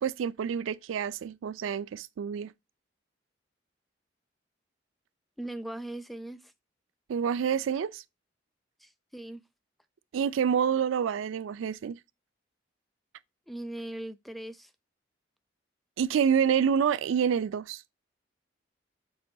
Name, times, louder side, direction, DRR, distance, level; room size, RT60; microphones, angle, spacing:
voice 1, 0.0-2.5 7.1-8.0 10.1-12.0 16.0-17.8, right 7 dB, 85° right, 0.3 m, -27 dB
voice 2, 5.4-6.5 8.8-9.4 13.5-14.7, right 1 dB, ahead, 0.3 m, -39 dB
6.1 x 2.9 x 2.6 m
head